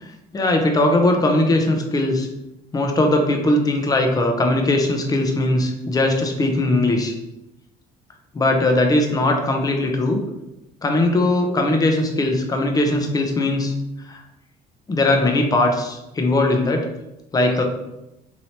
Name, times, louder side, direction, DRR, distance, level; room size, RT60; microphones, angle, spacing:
voice 1, 0.0-2.3 2.7-7.1 8.3-10.2 10.8-13.7 14.1-14.2 14.9-16.9 17.3-17.6, left 2 dB, 20° left, 3 dB, 0.6 m, -19 dB
3.1 x 2.8 x 2.8 m, 0.90 s
cardioid pair, 110°, 17 cm